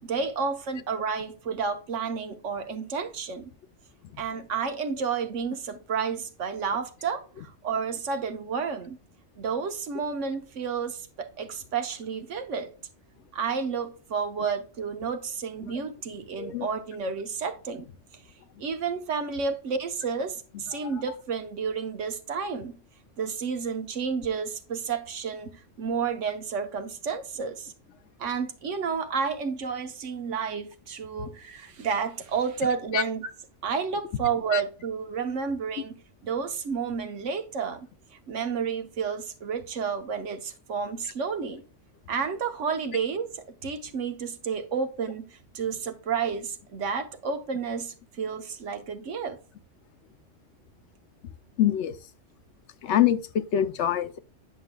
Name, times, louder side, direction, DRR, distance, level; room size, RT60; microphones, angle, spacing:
voice 1, 0.0-3.5 4.2-9.0 9.4-12.7 13.3-17.9 18.6-22.7 23.2-27.7 28.2-33.3 33.6-35.9 36.2-41.6 42.1-49.4, right 6 dB, 75° right, 1.3 m, -31 dB
voice 2, 51.6-52.0 52.8-54.2, left 11 dB, 70° left, 0.9 m, -24 dB
9.8 x 6.4 x 2.2 m
omnidirectional pair, 1.3 m